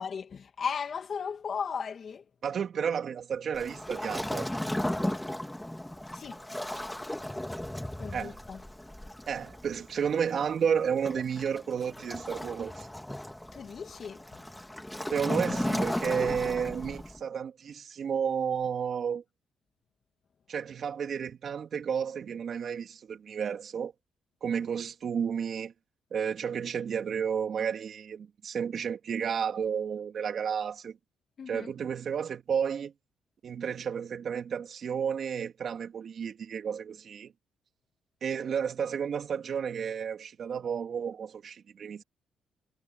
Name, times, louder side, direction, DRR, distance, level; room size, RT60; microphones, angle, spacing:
voice 1, 0.0-2.2 6.1-6.4 8.0-8.6 13.5-14.3 31.4-31.7, left 6 dB, 50° left, 2.5 m, -36 dB
voice 2, 2.4-4.5 8.1-8.4 9.3-12.9 15.1-19.2 20.5-23.9 24.4-25.7 26.1-31.0 31.5-32.9 33.4-37.3 38.2-42.0, right 7 dB, 55° right, 3.0 m, -32 dB
Waves surf, 3.5-17.2, left 1 dB, 5° left, 2.1 m, -36 dB
cardioid pair, 90°, 0 cm